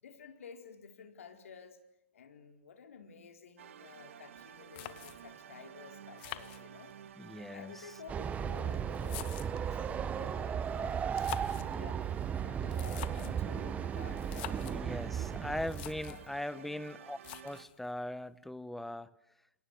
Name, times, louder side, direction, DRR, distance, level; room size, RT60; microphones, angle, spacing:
voice 1, 0.0-1.8 2.1-6.9 7.5-12.0 12.4-15.6 16.1-16.7, left 6 dB, 70° left, 4.5 m, -52 dB
sound 1, 3.6-17.7, right 10 dB, 65° right, 1.9 m, -53 dB
sound 2, 4.4-4.5 4.7-5.4 6.2-7.1 8.0-9.7 11.0-11.8 12.6-13.4 14.2-14.8 15.3-15.4 15.6-16.3 17.2-17.8, left 16 dB, 45° left, 1.8 m, -46 dB
voice 2, 7.1-7.8 14.7-17.2 17.4-19.1, left 1 dB, 5° left, 1.1 m, -40 dB
Train, 8.1-16.2, right 8 dB, 20° right, 1.1 m, -36 dB
28.5 x 28.0 x 7.3 m
figure-of-eight pair, 115°, 8 cm